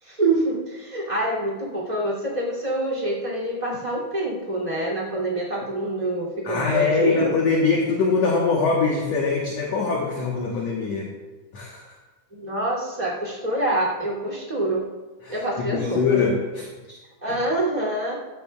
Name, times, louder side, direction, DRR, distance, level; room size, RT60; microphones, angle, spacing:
voice 1, 0.0-7.3 12.3-14.9 15.3-16.2 17.2-18.1, right 2 dB, 10° right, -3 dB, 2.2 m, -26 dB
voice 2, 6.5-11.1 11.5-12.0 15.2-17.0 17.3-17.4, left 4 dB, 60° left, -2 dB, 1.9 m, -23 dB
14.5 x 14.0 x 2.4 m, 1.2 s
omnidirectional pair, 4.5 m